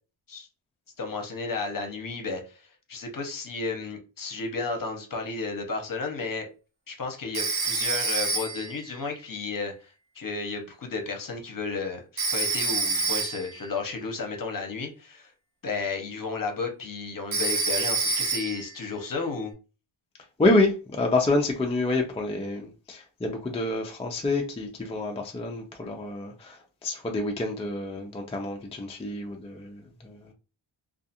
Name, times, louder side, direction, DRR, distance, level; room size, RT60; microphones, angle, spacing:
voice 1, 1.0-6.5 6.9-15.3 15.6-19.5, left 4 dB, 45° left, 0.8 m, -33 dB
Telephone, 7.3-8.8 12.2-13.6 17.3-18.7, right 4 dB, 55° right, 1.0 m, -27 dB
voice 2, 20.4-30.3, left 2 dB, 15° left, 0.4 m, -28 dB
2.4 x 2.4 x 2.7 m
wide cardioid pair, 115°, 47 cm